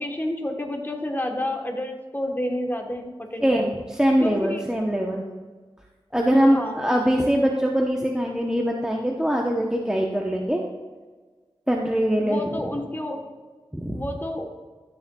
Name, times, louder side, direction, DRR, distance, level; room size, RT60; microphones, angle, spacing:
voice 1, 0.0-3.6 4.2-4.6 6.5-6.8 12.2-13.3 13.9-14.5, left 1 dB, 20° left, 3 dB, 1.1 m, -30 dB
voice 2, 3.4-5.3 6.1-10.6 11.7-12.4 13.7-14.0, equal, 5° right, 0 dB, 0.8 m, -22 dB
12.5 x 7.0 x 2.3 m, 1.4 s
wide cardioid pair, 75°, 10 cm